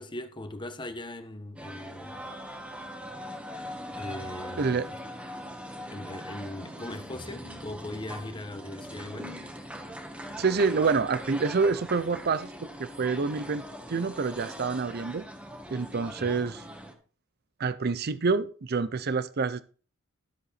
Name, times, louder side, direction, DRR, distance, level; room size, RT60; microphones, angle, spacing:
voice 1, 0.0-2.1 4.0-4.9 5.9-9.4 16.2-16.4, left 1 dB, 25° left, 1.3 m, -39 dB
sound 1, 1.6-16.9, equal, 5° right, 1.9 m, -41 dB
voice 2, 4.6-4.9 10.4-12.5 12.8-15.2 15.7-16.6 17.6-19.6, right 4 dB, 50° right, 0.6 m, -27 dB
13.0 x 7.7 x 4.2 m
head